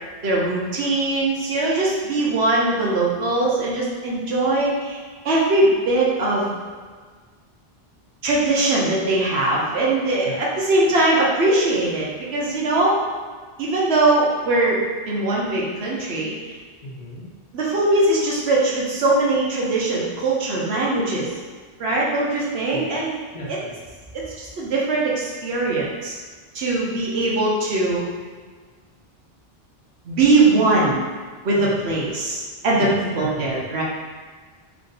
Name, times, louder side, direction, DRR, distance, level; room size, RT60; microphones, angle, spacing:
voice 1, 0.2-5.0 5.2-6.5 8.2-13.0 13.6-14.8 15.0-16.3 17.5-21.3 21.8-23.1 24.1-26.1 26.5-28.0 30.1-31.0 31.4-33.8, right 2 dB, 85° right, -4 dB, 1.1 m, -21 dB
voice 2, 16.8-17.3 22.7-22.9 23.3-23.7 31.6-31.9 32.7-33.6, equal, 45° left, -6 dB, 0.8 m, -35 dB
3.6 x 2.6 x 3.9 m, 1.5 s
omnidirectional pair, 1.0 m